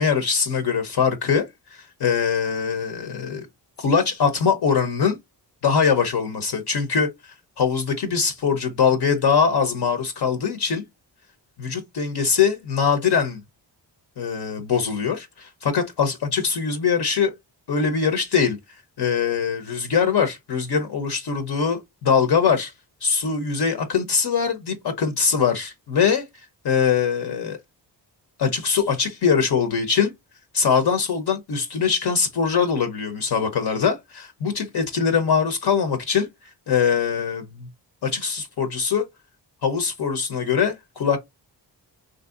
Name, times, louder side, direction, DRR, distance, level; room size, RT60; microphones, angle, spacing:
voice 1, 0.0-1.4 1.7-3.5 3.8-5.2 5.6-10.8 11.6-13.4 14.2-17.3 17.7-18.6 19.0-22.7 23.0-26.2 26.6-27.6 28.4-30.1 30.5-36.3 36.7-37.7 38.0-39.0 39.6-41.2, left 6 dB, 65° left, 0.7 m, -22 dB
3.3 x 2.6 x 2.4 m
cardioid pair, 60°, 44 cm